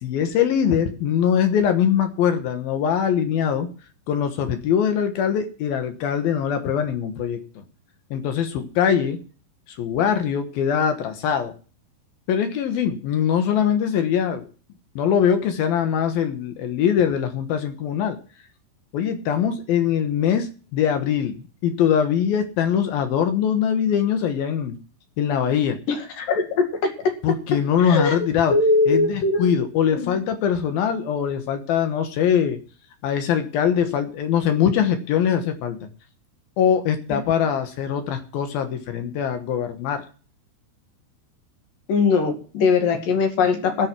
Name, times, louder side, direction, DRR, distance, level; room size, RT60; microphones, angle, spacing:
voice 1, 0.0-3.7 4.1-7.4 8.1-9.2 9.7-11.5 12.3-14.4 15.0-18.2 18.9-24.8 25.2-25.8 27.2-28.6 28.9-32.6 33.0-35.9 36.6-40.0, left 8 dB, 75° left, 7 dB, 2.3 m, -22 dB
voice 2, 26.2-26.6 27.9-28.2 28.5-29.5 29.9-30.1 41.9-43.9, left 4 dB, 50° left, 4 dB, 3.2 m, -20 dB
17.0 x 7.7 x 6.1 m, 0.38 s
omnidirectional pair, 5.9 m